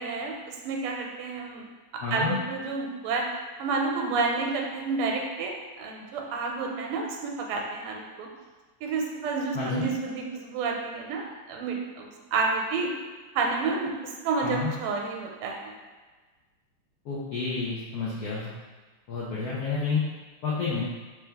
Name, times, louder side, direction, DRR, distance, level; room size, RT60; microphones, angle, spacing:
voice 1, 0.0-1.6 1.9-3.3 3.6-8.3 8.8-12.9 13.3-15.7, right 4 dB, 90° right, 1 dB, 1.5 m, -30 dB
voice 2, 2.0-2.4 9.5-9.9 14.4-14.7 17.0-18.5 19.1-20.0 20.4-20.8, left 4 dB, 85° left, -7 dB, 0.8 m, -29 dB
3.4 x 3.2 x 3.3 m, 1.3 s
omnidirectional pair, 2.4 m